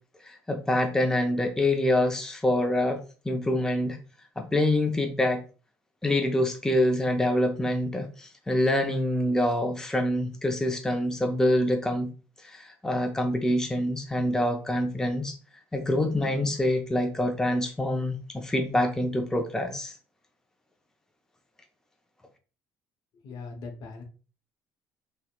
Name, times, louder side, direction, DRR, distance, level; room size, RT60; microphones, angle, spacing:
voice 1, 0.2-4.0 4.4-5.4 6.0-12.1 12.4-15.4 15.7-19.9, left 1 dB, 10° left, 4 dB, 0.4 m, -26 dB
voice 2, 23.1-24.0, left 4 dB, 65° left, 4 dB, 0.7 m, -40 dB
2.8 x 2.0 x 2.2 m, 0.35 s
hypercardioid pair, 70°, 8 cm